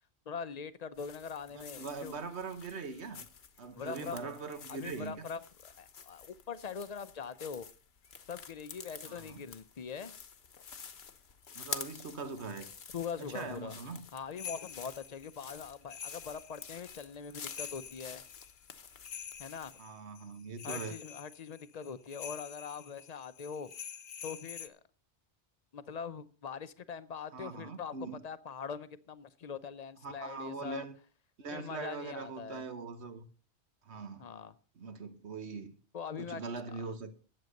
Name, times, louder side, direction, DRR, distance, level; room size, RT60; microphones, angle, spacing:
voice 1, 0.3-2.2 3.7-4.3 4.7-7.7 8.3-10.1 12.9-13.8 14.1-18.2 19.4-19.8 20.6-23.7 24.2-24.8 25.7-28.0 28.2-30.8 31.5-32.7 34.2-34.6 35.9-36.4, left 6 dB, 45° left, 0.7 m, -42 dB
sound 1, 0.9-19.8, left 7 dB, 65° left, 1.2 m, -49 dB
voice 2, 1.5-3.2 3.6-5.2 9.1-9.4 11.5-12.7 13.3-14.0 19.8-21.0 27.3-28.2 30.0-30.9 31.4-33.3 33.8-34.3 34.8-35.8 36.2-37.2, right 4 dB, 70° right, 1.5 m, -41 dB
sound 2, 14.4-24.7, left 8 dB, 85° left, 1.1 m, -47 dB
11.0 x 7.9 x 6.5 m
omnidirectional pair, 1.2 m